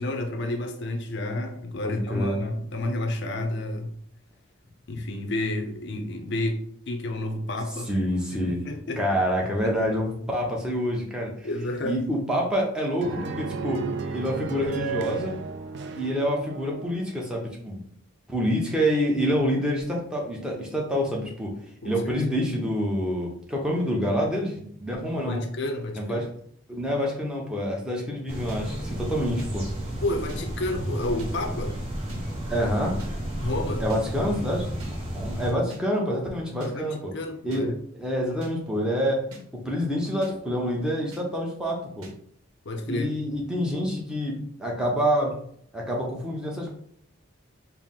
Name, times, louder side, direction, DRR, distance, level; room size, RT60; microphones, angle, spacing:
voice 1, 0.0-3.9 4.9-9.7 11.4-12.0 21.8-22.3 25.2-26.3 30.0-31.8 33.4-33.9 36.6-37.8 42.7-43.1, left 1 dB, 55° left, 5 dB, 0.5 m, -31 dB
voice 2, 1.8-2.4 7.9-8.6 9.0-11.5 11.8-13.8 14.1-15.4 16.0-17.8 18.3-21.5 21.8-25.4 25.9-26.3 26.7-29.7 32.5-33.0 33.8-34.7 35.1-37.0 37.4-39.2 39.6-42.1 42.8-45.3 45.7-46.8, equal, 5° right, -2 dB, 0.7 m, -27 dB
sound 1, 13.0-17.2, right 4 dB, 55° right, 0.3 m, -33 dB
sound 2, 28.3-35.5, equal, 30° right, 1.0 m, -32 dB
sound 3, 28.5-28.6 29.4-29.5 30.3-30.4 31.2-31.3 32.1-32.2 33.0-33.1 33.9-34.0 34.8-34.9 35.7-35.8 36.6-36.7 37.5-37.6 38.4-38.5 39.3-39.4 40.2-40.3 41.1-41.2 42.0-42.1, equal, 85° right, 0.8 m, -44 dB
4.4 x 2.0 x 3.6 m, 0.65 s
head